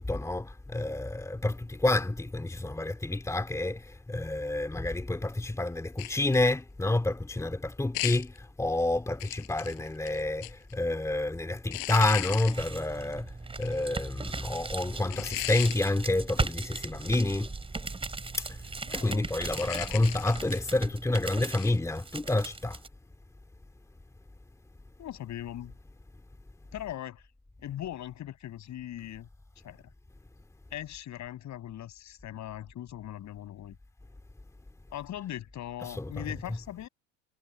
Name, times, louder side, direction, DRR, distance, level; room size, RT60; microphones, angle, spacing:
voice 1, 0.0-13.3 13.6-17.5 18.4-18.5 18.9-22.8 35.8-36.3, left 2 dB, 10° left, 2.6 m, -29 dB
sound 1, 6.0-6.5 7.9-8.4 9.2-10.7 11.7-12.7 13.6-13.9 15.1-15.8 19.4-20.7 21.6-21.8, left 31 dB, 70° left, 5.9 m, -36 dB
sound 2, 12.0-22.9, right 3 dB, 15° right, 3.3 m, -38 dB
voice 2, 18.9-19.3 25.0-25.7 26.7-27.3 27.6-29.3 29.6-29.8 30.7-33.8 34.9-36.9, left 12 dB, 45° left, 7.1 m, -40 dB
supercardioid pair, 105°, 38 cm